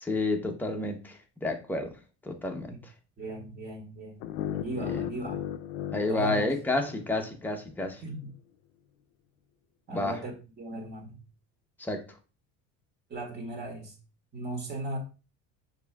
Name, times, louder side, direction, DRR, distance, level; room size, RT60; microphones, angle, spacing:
voice 1, 0.0-1.9 2.2-2.7 4.9-5.0 5.9-8.0 9.9-10.2 11.8-12.0, left 2 dB, 5° left, 0.7 m, -30 dB
voice 2, 3.2-4.2 4.5-5.5 6.1-6.5 8.0-8.3 9.9-11.2 13.1-14.0 14.3-15.0, right 1 dB, 30° right, 1.8 m, -37 dB
sound 1, 4.2-7.3, left 10 dB, 80° left, 0.5 m, -36 dB
6.7 x 2.7 x 2.2 m
cardioid pair, 130°, 32 cm